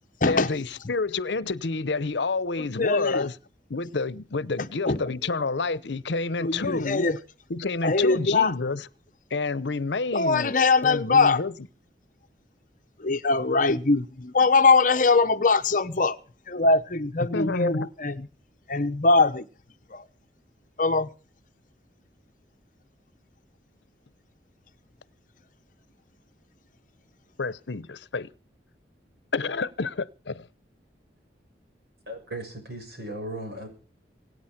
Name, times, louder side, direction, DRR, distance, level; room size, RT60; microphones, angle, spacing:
voice 1, 0.3-3.3 3.7-7.1 7.5-8.8 9.3-10.5 10.8-11.5 17.3-17.9 27.4-28.3 29.3-30.5, left 3 dB, 80° left, 0.8 m, -29 dB
voice 2, 2.6-3.3 4.9-5.0 6.4-7.2 7.8-8.5 10.1-11.4 13.0-16.2 16.5-18.3 18.7-19.4 19.9-20.0 20.8-21.1, left 3 dB, 50° left, 1.0 m, -22 dB
voice 3, 32.1-33.7, right 1 dB, 60° right, 6.9 m, -36 dB
25.0 x 9.4 x 5.9 m
head